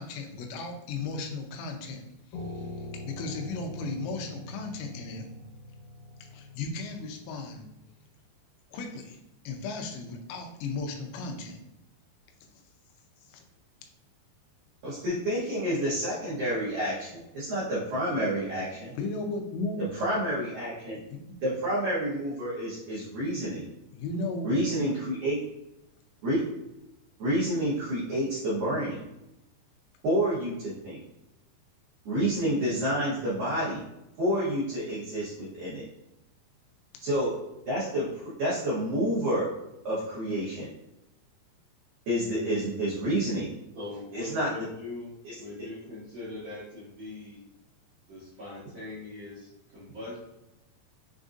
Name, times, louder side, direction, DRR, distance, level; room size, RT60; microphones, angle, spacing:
voice 1, 0.0-2.0 2.5-5.3 6.3-7.6 8.7-9.2 9.5-11.6 13.3-13.4 19.0-19.8 21.1-21.4 23.9-24.5, left 3 dB, 85° left, 3 dB, 3.1 m, -35 dB
Piano, 2.3-7.6, left 1 dB, 70° left, 2.9 m, -43 dB
voice 2, 14.8-18.9 19.8-21.0 21.4-23.6 24.4-25.4 26.2-26.4 27.2-29.0 30.0-31.0 32.1-33.8 34.2-35.8 37.0-37.4 37.7-39.5 39.8-40.7 42.1-43.5 44.1-44.5 45.2-45.3, equal, 85° right, -8 dB, 1.9 m, -29 dB
voice 3, 43.7-47.4 48.1-50.2, left 2 dB, 65° right, -11 dB, 1.7 m, -41 dB
7.1 x 2.6 x 2.4 m, 0.90 s
omnidirectional pair, 5.5 m